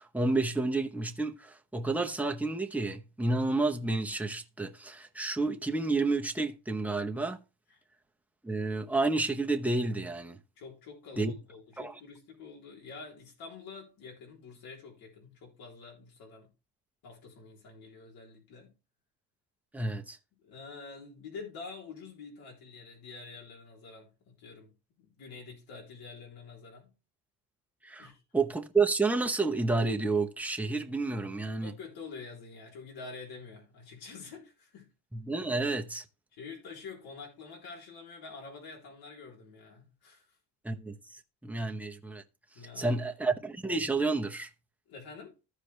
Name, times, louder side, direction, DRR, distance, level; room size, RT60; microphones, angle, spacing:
voice 1, 0.0-7.4 8.4-10.4 11.2-11.3 11.8-11.9 19.7-20.2 27.8-31.7 35.1-36.0 40.6-41.0 41.4-42.2 42.8-44.5, right 3 dB, 5° right, 0.9 m, -30 dB
voice 2, 10.6-16.5 17.0-18.7 20.3-24.7 25.0-26.9 28.0-28.2 31.6-34.9 36.3-40.4 42.5-43.1 44.9-45.4, left 4 dB, 65° left, 3.6 m, -47 dB
14.0 x 5.0 x 3.2 m
cardioid pair, 120°, 39 cm